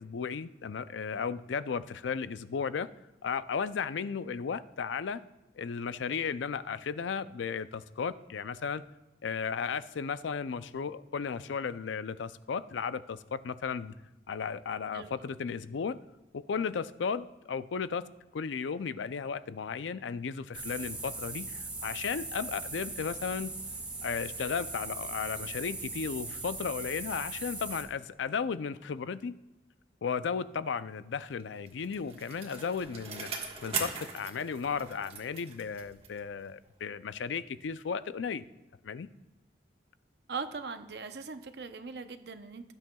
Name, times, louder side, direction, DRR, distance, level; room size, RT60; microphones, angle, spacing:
voice 1, 0.0-2.9 3.2-5.2 5.6-8.8 9.2-13.9 14.3-16.0 16.3-18.0 18.3-23.5 24.0-29.4 30.0-33.3 33.6-38.5 38.8-39.1, left 6 dB, 90° left, 14 dB, 0.4 m, -35 dB
sound 1, 20.5-27.8, right 3 dB, 10° right, 1.8 m, -39 dB
Bicycle, 31.4-36.3 36.7-36.8, right 5 dB, 30° right, 1.4 m, -40 dB
voice 2, 40.3-42.7, right 4 dB, 65° right, 8 dB, 0.8 m, -40 dB
18.5 x 8.9 x 2.3 m, 1.1 s
head